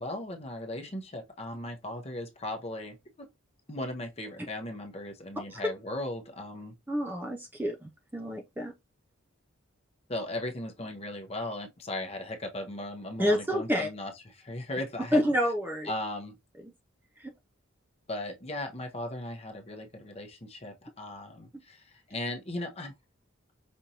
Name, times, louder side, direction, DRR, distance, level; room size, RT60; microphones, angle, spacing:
voice 1, 0.0-3.3 3.7-6.7 10.1-15.2 15.9-16.3 18.1-23.0, left 1 dB, 30° left, 0.8 m, -37 dB
voice 2, 6.9-8.7 13.2-13.9 15.1-15.9 16.6-16.7 17.2-17.3, equal, 10° right, 0.4 m, -29 dB
5.2 x 2.5 x 2.8 m
head